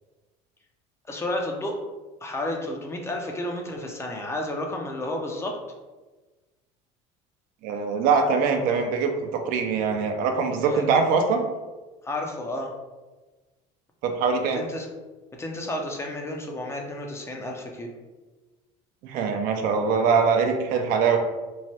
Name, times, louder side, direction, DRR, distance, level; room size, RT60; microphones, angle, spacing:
voice 1, 1.1-1.8 2.2-5.6 10.6-10.8 12.0-12.7 14.5-14.9 15.4-17.9, left 1 dB, 15° left, 1 dB, 0.5 m, -31 dB
voice 2, 7.6-11.4 14.0-14.6 19.0-21.2, right 5 dB, 60° right, 4 dB, 0.5 m, -23 dB
3.0 x 2.2 x 2.8 m, 1.2 s
supercardioid pair, 105°, 16 cm